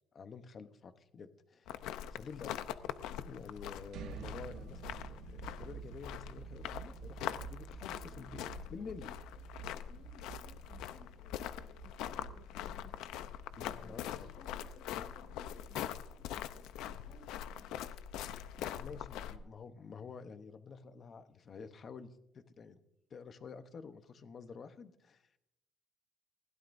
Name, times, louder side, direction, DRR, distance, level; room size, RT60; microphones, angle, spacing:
voice 1, 0.1-1.8 2.1-2.5 3.2-9.1 13.6-14.3 14.9-15.0 18.6-22.8 23.1-25.2, left 5 dB, 35° left, 9 dB, 0.9 m, -49 dB
sound 1, 1.7-19.4, left 10 dB, 90° left, 0.7 m, -43 dB
sound 2, 3.9-15.7, right 10 dB, 60° right, 0.4 m, -50 dB
voice 2, 8.8-12.9 13.7-17.8, left 3 dB, 65° left, -1 dB, 4.7 m, -60 dB
20.5 x 16.0 x 2.6 m, 0.83 s
cardioid pair, 165°, 0 cm